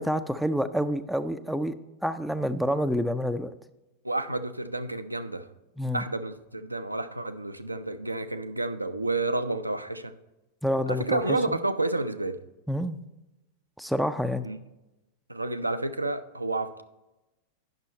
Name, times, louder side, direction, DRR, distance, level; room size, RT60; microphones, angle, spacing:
voice 1, 0.0-1.7 2.0-3.5 5.8-6.0 10.6-11.4 12.7-13.0 13.8-14.5, equal, ahead, 0.4 m, -28 dB
voice 2, 4.0-5.5 5.9-10.1 10.9-12.4 14.4-14.6 15.3-16.8, right 2 dB, 85° right, 0.5 m, -30 dB
9.5 x 6.1 x 4.2 m
figure-of-eight pair, 90°, 0 cm